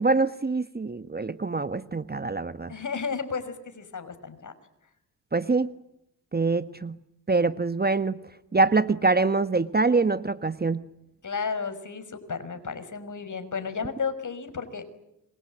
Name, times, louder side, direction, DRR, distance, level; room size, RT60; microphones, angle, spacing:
voice 1, 0.0-2.7 5.3-5.7 6.3-7.0 7.3-8.2 8.5-10.8, right 3 dB, 20° right, 12 dB, 1.3 m, -24 dB
voice 2, 2.7-4.5 11.2-14.8, left 5 dB, 45° left, 10 dB, 6.2 m, -33 dB
26.5 x 24.5 x 9.0 m, 0.86 s
hypercardioid pair, 50°, 43 cm